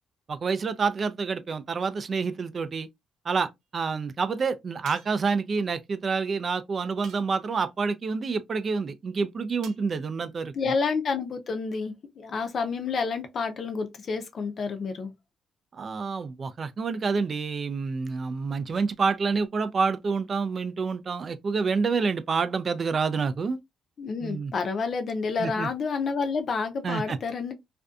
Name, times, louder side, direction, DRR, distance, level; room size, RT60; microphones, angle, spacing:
voice 1, 0.3-2.9 3.3-10.7 15.7-23.6 24.2-24.5 25.4-25.7 26.8-27.2, right 5 dB, 45° right, 0.3 m, -28 dB
sound 1, 4.9-5.3 7.0-7.6 9.6-9.9, right 6 dB, 85° right, 0.7 m, -48 dB
voice 2, 10.5-15.1 24.0-27.5, left 5 dB, 50° left, 0.6 m, -29 dB
2.5 x 2.2 x 2.4 m
cardioid pair, 90°, 0 cm